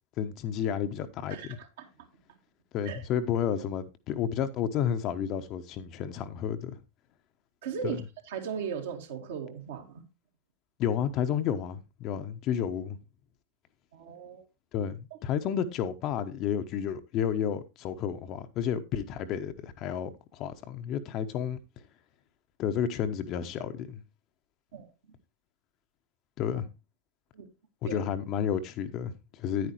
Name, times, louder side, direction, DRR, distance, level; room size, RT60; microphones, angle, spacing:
voice 1, 0.2-1.6 2.7-6.8 7.8-8.0 10.8-13.0 14.7-21.6 22.6-24.0 26.4-26.7 27.8-29.7, left 8 dB, 35° left, 1.0 m, -31 dB
voice 2, 1.3-1.9 2.8-3.0 7.6-8.0 8.3-10.0 13.9-14.4 15.1-15.2 24.7-24.9 27.3-27.5 27.8-28.0, right 7 dB, 55° right, 2.1 m, -37 dB
10.0 x 9.5 x 3.0 m
figure-of-eight pair, 90°, 0 cm